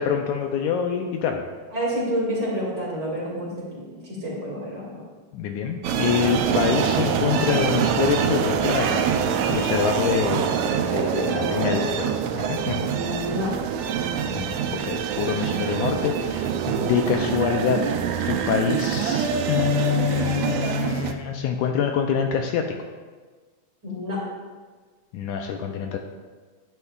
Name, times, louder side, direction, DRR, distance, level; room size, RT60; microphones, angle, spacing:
voice 1, 0.0-1.4 5.3-9.0 9.5-10.6 10.9-12.1 12.4-12.9 14.3-17.8 18.3-22.8 25.1-26.0, left 8 dB, 80° left, 4 dB, 1.9 m, -25 dB
voice 2, 1.7-5.0 11.3-11.8 12.8-13.5 23.8-24.2, equal, 35° right, -6 dB, 2.6 m, -29 dB
sound 1, 5.8-21.1, right 7 dB, 80° right, 1.6 m, -25 dB
10.0 x 9.7 x 2.4 m, 1.4 s
omnidirectional pair, 3.7 m